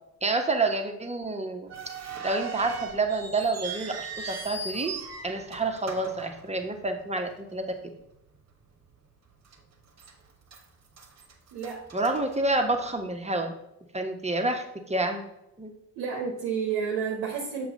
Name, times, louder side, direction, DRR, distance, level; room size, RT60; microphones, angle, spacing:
voice 1, 0.2-1.7 2.2-4.9 5.2-7.6 11.9-13.5 13.9-15.3 15.6-15.7, right 2 dB, 15° right, 4 dB, 1.1 m, -28 dB
sound 1, 1.7-7.0 7.3-7.4 8.1-8.4 8.8-8.9 9.5-10.1 10.5-12.9, right 4 dB, 40° right, 1.2 m, -39 dB
voice 2, 11.5-11.9 16.0-17.7, right 6 dB, 60° right, 1 dB, 1.1 m, -30 dB
7.1 x 3.1 x 5.2 m, 0.82 s
figure-of-eight pair, 40°, 43 cm